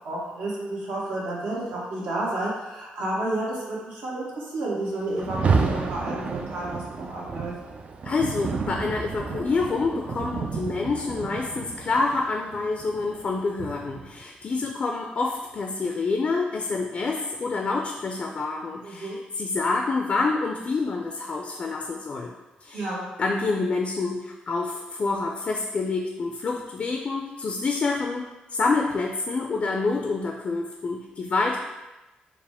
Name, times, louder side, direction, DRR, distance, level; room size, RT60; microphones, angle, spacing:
voice 1, 0.0-7.5 18.8-19.2 22.7-23.0, right 1 dB, 75° right, -5 dB, 1.3 m, -31 dB
Rain, 5.1-14.2, right 5 dB, 45° right, 0.4 m, -30 dB
voice 2, 8.0-22.3 22.6-22.9 23.2-28.3 28.5-31.6, left 3 dB, 40° left, 1 dB, 0.4 m, -27 dB
4.7 x 2.1 x 3.5 m, 1.1 s
cardioid pair, 85°, 3 cm